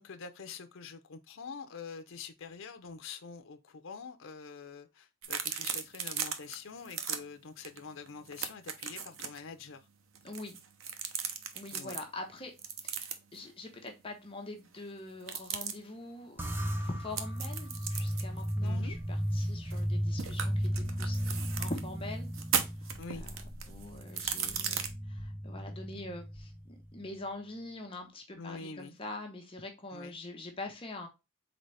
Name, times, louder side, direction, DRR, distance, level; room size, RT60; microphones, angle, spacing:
voice 1, 0.0-9.9 11.7-12.0 18.6-19.0 23.0-23.2 28.4-28.9 29.9-30.1, left 5 dB, 70° left, 0.6 m, -45 dB
sound 1, 5.2-6.6 6.9-7.2 7.6-7.8 8.1-9.4 10.2-12.0 12.6-13.4 15.2-15.7 17.2-19.9 20.2-21.8 22.3-24.9, right 7 dB, 75° right, 0.7 m, -36 dB
voice 2, 10.2-10.6 11.5-12.5 12.8-16.4 16.8-22.3 22.8-31.1, left 2 dB, 25° left, 0.9 m, -44 dB
sound 2, 16.4-27.0, equal, 10° right, 0.6 m, -35 dB
4.0 x 3.9 x 3.2 m
head